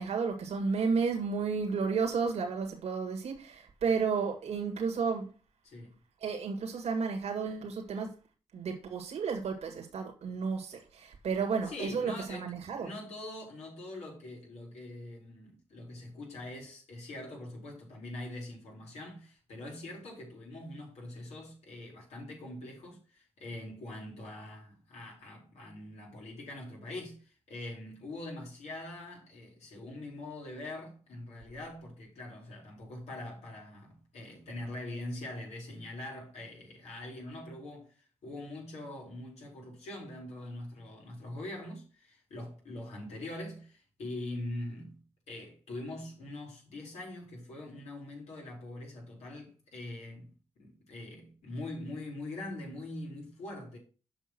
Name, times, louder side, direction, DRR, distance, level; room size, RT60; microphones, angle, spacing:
voice 1, 0.0-5.3 6.2-8.1 8.5-12.9, right 5 dB, 80° right, 2.0 m, -32 dB
voice 2, 5.6-5.9 11.6-37.9 38.2-45.0 45.3-50.3 50.6-53.8, left 1 dB, 85° left, 4.6 m, -43 dB
7.1 x 5.6 x 6.0 m
cardioid pair, 65°, 11 cm